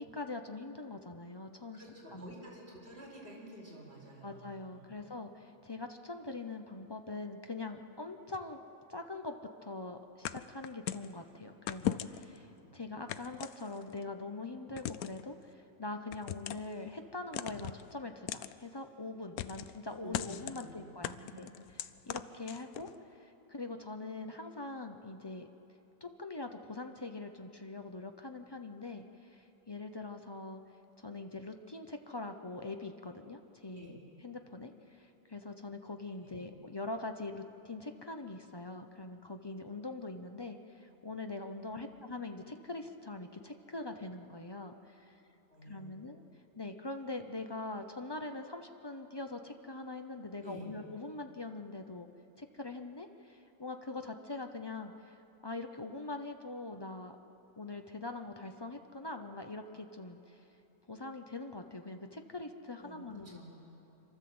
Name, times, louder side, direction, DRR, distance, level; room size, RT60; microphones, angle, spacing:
voice 1, 0.0-1.8 2.1-2.3 4.2-8.6 8.9-9.3 9.6-21.5 22.1-22.9 23.2-25.5 26.0-30.6 31.0-34.0 34.2-45.1 45.7-46.2 46.6-52.1 52.4-55.1 55.4-57.1 57.6-60.4 60.9-63.4, left 3 dB, 35° left, 6 dB, 0.4 m, -43 dB
voice 2, 1.7-4.9 12.6-12.8 20.0-21.6 33.7-34.0 36.2-36.4 41.6-42.1 45.5-46.0 50.4-50.7 62.7-63.5, right 1 dB, 40° right, -4 dB, 5.0 m, -51 dB
sound 1, 10.2-11.1 11.7-12.4 13.1-14.0 14.8-15.2 16.1-16.7 17.3-17.8 18.3-18.5 19.4-19.8 20.1-20.6 21.0-22.9, left 11 dB, 70° left, 1.0 m, -38 dB
27.0 x 12.5 x 7.8 m, 2.9 s
omnidirectional pair, 1.7 m